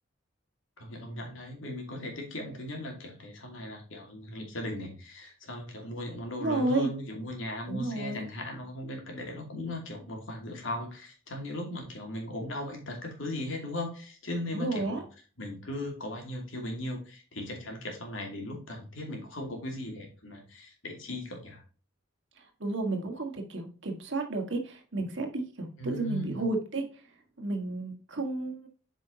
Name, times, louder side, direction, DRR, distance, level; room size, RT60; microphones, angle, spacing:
voice 1, 0.8-15.0 15.4-21.6 25.8-26.5, left 1 dB, 75° left, 2 dB, 2.6 m, -38 dB
voice 2, 6.4-6.9 7.7-8.2 14.5-15.0 22.6-26.9 27.4-28.6, right 2 dB, 65° right, 5 dB, 1.6 m, -31 dB
8.2 x 5.2 x 2.8 m, 0.38 s
head